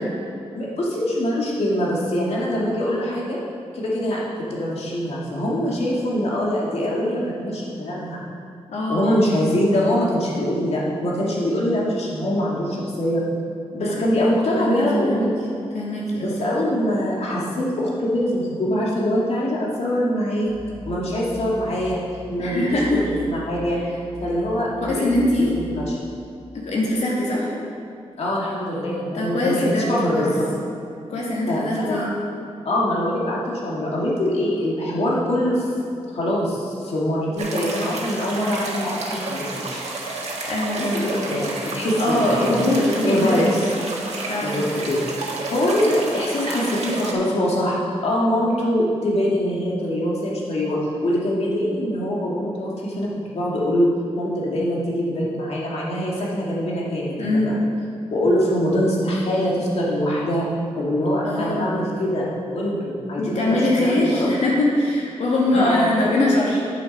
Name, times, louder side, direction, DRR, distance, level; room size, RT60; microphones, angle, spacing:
voice 1, 0.5-3.4 3.7-4.2 4.5-8.2 8.9-13.2 13.7-15.3 16.2-20.5 20.9-22.0 22.3-23.8 24.2-26.1 28.2-30.4 31.5-32.1 32.6-35.7 36.1-39.8 40.8-42.5 43.0-43.4 44.4-45.0 45.5-53.9 54.2-57.6 58.1-60.5 60.8-64.3 65.5-65.9, equal, 65° left, -5 dB, 2.1 m, -23 dB
voice 2, 8.7-9.2 13.8-13.9 14.6-15.3 15.7-16.3 22.4-23.0 24.8-25.5 26.5-27.5 29.1-29.9 30.1-30.3 31.1-32.1 40.4-41.2 42.0-43.6 44.3-44.6 57.2-57.6 61.2-61.7 63.2-66.6, left 1 dB, 85° left, -4 dB, 2.4 m, -22 dB
sound 1, 20.5-26.0, right 1 dB, 45° left, 1.7 m, -40 dB
sound 2, 37.4-47.1, right 2 dB, 80° right, 1.7 m, -30 dB
9.4 x 7.1 x 5.3 m, 2.7 s
wide cardioid pair, 170°, 11 cm